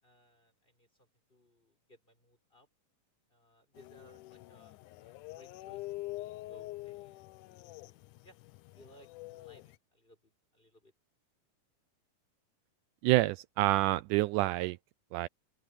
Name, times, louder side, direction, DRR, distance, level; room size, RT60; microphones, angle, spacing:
voice 1, 0.0-2.7 3.3-8.4 8.7-10.9, equal, 15° left, 6.2 m, -63 dB
sound 1, 3.8-9.8, left 18 dB, 80° left, 1.9 m, -46 dB
voice 2, 13.0-14.8 15.1-15.3, right 18 dB, 90° right, 1.8 m, -27 dB
open air
omnidirectional pair, 4.1 m